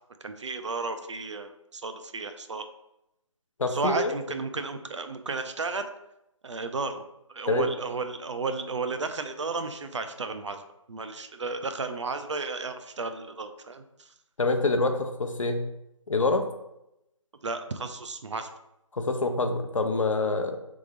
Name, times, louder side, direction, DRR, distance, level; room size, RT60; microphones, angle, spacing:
voice 1, 0.2-2.7 3.7-5.9 6.4-7.0 7.3-10.6 10.9-14.1 17.4-18.5, right 3 dB, 60° right, 8 dB, 0.5 m, -33 dB
voice 2, 3.6-4.1 7.5-7.7 14.4-15.6 16.1-16.5 18.9-20.6, left 3 dB, 70° left, 6 dB, 0.7 m, -26 dB
3.7 x 3.5 x 3.4 m, 0.85 s
figure-of-eight pair, 155°, 17 cm